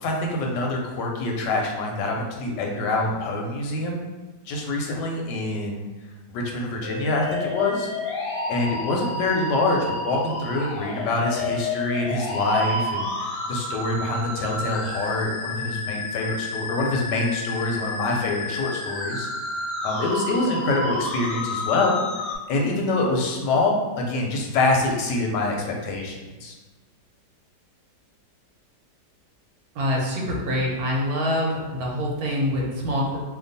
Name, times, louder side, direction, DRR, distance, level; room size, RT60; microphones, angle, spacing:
voice 1, 0.0-4.0 4.5-5.9 6.3-7.9 8.5-19.3 19.5-22.0 22.5-26.2 26.4-26.5, left 2 dB, 90° left, 0 dB, 1.3 m, -25 dB
sound 1, 6.8-22.4, left 2 dB, 65° left, 0.9 m, -30 dB
voice 2, 29.7-33.2, left 1 dB, 65° right, -2 dB, 1.1 m, -25 dB
2.9 x 2.3 x 3.9 m, 1.2 s
omnidirectional pair, 1.8 m